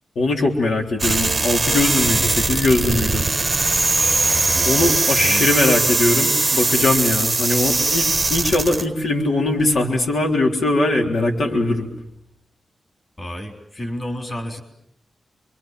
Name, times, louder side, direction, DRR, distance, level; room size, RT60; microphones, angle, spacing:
voice 1, 0.2-3.2 4.6-8.1 8.3-11.9, left 2 dB, 75° left, 1 dB, 3.6 m, -20 dB
sound 1, 1.0-8.9, right 3 dB, 20° right, 1.0 m, -20 dB
voice 2, 3.1-3.5 4.0-4.9 5.2-5.5 13.2-14.6, equal, 25° left, 3 dB, 3.8 m, -31 dB
28.5 x 23.5 x 7.6 m, 0.75 s
wide cardioid pair, 155°, 0 cm